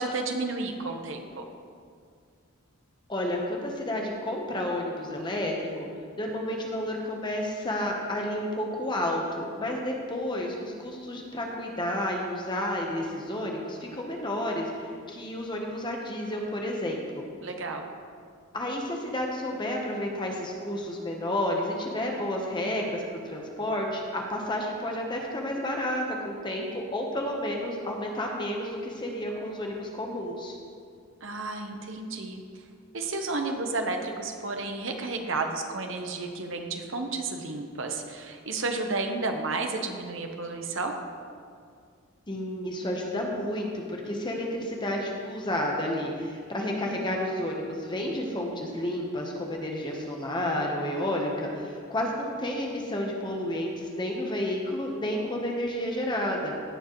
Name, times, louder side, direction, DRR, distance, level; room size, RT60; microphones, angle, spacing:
voice 1, 0.0-1.4 17.4-17.8 31.2-32.4 32.9-41.0, right 3 dB, 60° right, 4 dB, 1.0 m, -32 dB
voice 2, 3.1-5.9 6.2-17.2 18.5-30.6 42.3-56.5, left 1 dB, 20° left, 0 dB, 1.0 m, -31 dB
16.5 x 7.3 x 3.1 m, 2.2 s
head